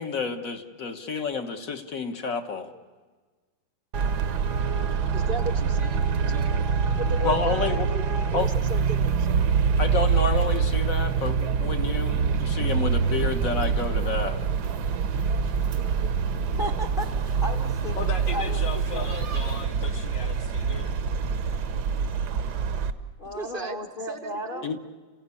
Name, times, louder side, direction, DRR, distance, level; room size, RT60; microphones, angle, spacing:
voice 1, 0.0-2.7 7.2-7.9 8.3-8.5 9.8-14.4 24.6-24.8, left 4 dB, 50° left, 6 dB, 1.6 m, -29 dB
Traffic noise roadway noise, 3.9-22.9, right 6 dB, 65° right, 1.4 m, -25 dB
voice 2, 5.1-6.6 6.9-9.3 23.3-23.8 24.1-24.7, right 2 dB, 40° right, 6 dB, 0.8 m, -36 dB
sound 1, 8.4-19.7, right 6 dB, 85° right, 1.9 m, -46 dB
voice 3, 16.6-19.3 23.2-24.8, left 1 dB, 30° left, 4 dB, 1.2 m, -35 dB
voice 4, 17.9-20.9, left 5 dB, 75° left, 2 dB, 1.6 m, -37 dB
30.0 x 16.5 x 8.3 m, 1.4 s
omnidirectional pair, 2.0 m